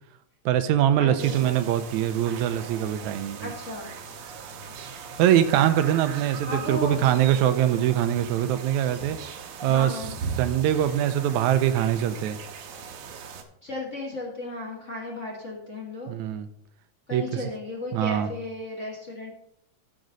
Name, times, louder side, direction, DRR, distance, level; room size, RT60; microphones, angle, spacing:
voice 1, 0.5-3.5 5.2-9.2 9.6-10.0 10.4-12.4 16.1-16.5 17.1-17.3 17.9-18.3, right 11 dB, 90° right, 11 dB, 2.0 m, -23 dB
voice 2, 1.0-1.6 3.4-3.9 6.5-7.0 9.6-10.2 13.6-16.1 17.1-19.3, left 2 dB, 35° left, -3 dB, 1.3 m, -34 dB
sound 1, 1.2-13.4, right 6 dB, 70° right, 2.0 m, -39 dB
14.0 x 5.3 x 3.9 m, 0.73 s
omnidirectional pair, 3.3 m